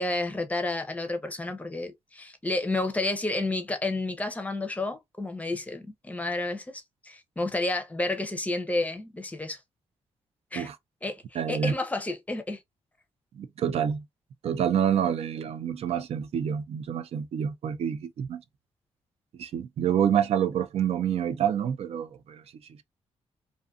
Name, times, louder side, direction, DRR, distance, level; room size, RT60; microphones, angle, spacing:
voice 1, 0.0-9.6 10.5-10.7 11.0-12.6, left 2 dB, 15° left, 0.6 m, -31 dB
voice 2, 11.4-11.7 13.3-14.0 14.4-18.4 19.3-22.4, right 9 dB, 65° right, 0.4 m, -27 dB
2.5 x 2.5 x 2.4 m
cardioid pair, 115°, 11 cm